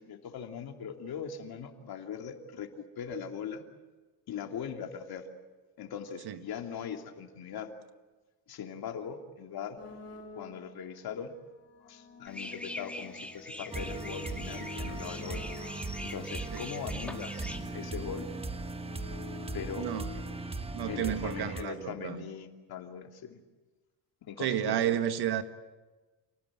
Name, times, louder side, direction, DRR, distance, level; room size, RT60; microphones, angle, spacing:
voice 1, 0.0-3.6 4.3-5.3 5.8-7.7 8.5-9.8 10.4-11.3 11.8-15.4 16.0-17.4 17.7-18.3 19.5-19.9 20.9-23.4 24.3-25.0, left 7 dB, 55° left, 2.9 m, -40 dB
sound 1, 9.8-10.9 11.6-16.1 16.9-20.3, left 4 dB, 35° left, 3.9 m, -48 dB
sound 2, 12.3-17.6, left 1 dB, 5° left, 2.4 m, -43 dB
sound 3, 13.7-21.6, right 3 dB, 15° right, 1.3 m, -38 dB
voice 2, 19.8-20.1 20.7-22.2 24.4-25.4, right 10 dB, 60° right, 1.6 m, -31 dB
28.5 x 18.5 x 8.9 m
cardioid pair, 125°, 44 cm